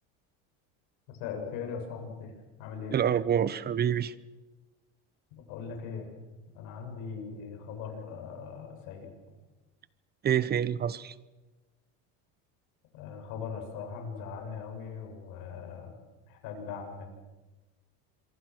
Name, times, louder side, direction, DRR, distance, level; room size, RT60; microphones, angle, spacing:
voice 1, 1.2-2.3 2.6-3.0 5.5-6.1 6.5-9.1 12.9-15.9 16.3-17.1, left 6 dB, 65° left, 3 dB, 7.6 m, -40 dB
voice 2, 2.9-4.1 10.2-11.1, right 9 dB, 30° right, 18 dB, 1.0 m, -27 dB
26.5 x 23.5 x 6.3 m, 1.2 s
supercardioid pair, 125°, 34 cm